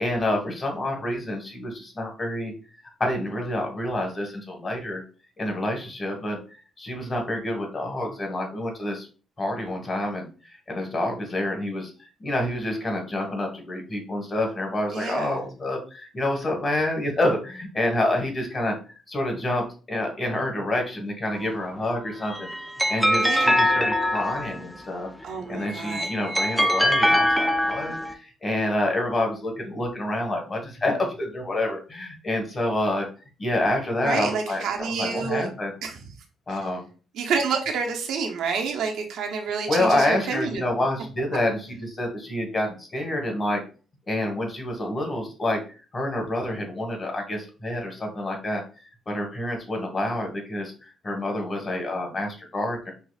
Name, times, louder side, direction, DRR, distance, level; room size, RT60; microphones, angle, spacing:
voice 1, 0.0-2.5 3.0-5.0 5.4-6.4 6.8-9.1 9.4-10.3 10.7-11.9 12.2-18.8 19.1-25.1 25.5-33.1 33.4-35.7 36.5-36.9 39.7-43.6 44.1-45.6 45.9-48.6 49.1-52.9, left 1 dB, 30° left, 2 dB, 1.3 m, -28 dB
voice 2, 14.9-15.4 23.2-23.6 25.2-26.1 34.0-35.5 35.8-36.0 37.1-40.6, right 5 dB, 80° right, 3 dB, 0.7 m, -28 dB
sound 1, 22.1-24.8 25.7-28.1, equal, ahead, 0.4 m, -22 dB
5.4 x 2.0 x 2.3 m, 0.36 s
cardioid pair, 90°, 0 cm